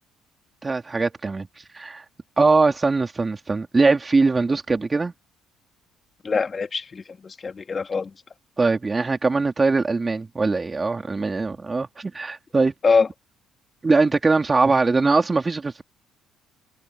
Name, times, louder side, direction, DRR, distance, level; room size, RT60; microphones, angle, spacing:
voice 1, 0.6-1.5 1.7-2.0 2.4-5.1 8.6-12.7 13.8-15.8, right 3 dB, 25° right, 4.0 m, -21 dB
voice 2, 6.2-8.1 11.2-11.3 12.8-13.1, left 5 dB, 35° left, 2.3 m, -23 dB
supercardioid pair, 65°, 0 cm